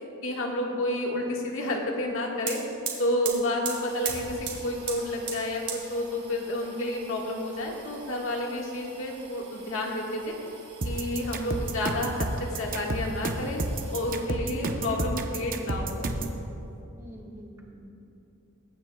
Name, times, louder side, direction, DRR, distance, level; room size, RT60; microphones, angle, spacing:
voice 1, 0.2-2.6 3.0-10.4 10.8-13.6 13.9-16.1, left 1 dB, 65° left, -1 dB, 1.6 m, -30 dB
sound 1, 2.1-2.2 2.4-14.3 14.8-15.5 15.8-16.8, right 6 dB, 55° right, 2.0 m, -41 dB
sound 2, 10.8-16.4, right 2 dB, 40° right, 0.7 m, -30 dB
voice 2, 11.2-11.5 14.4-14.7 17.0-17.9, equal, 15° right, -2 dB, 1.3 m, -46 dB
22.5 x 9.4 x 2.3 m, 2.9 s
head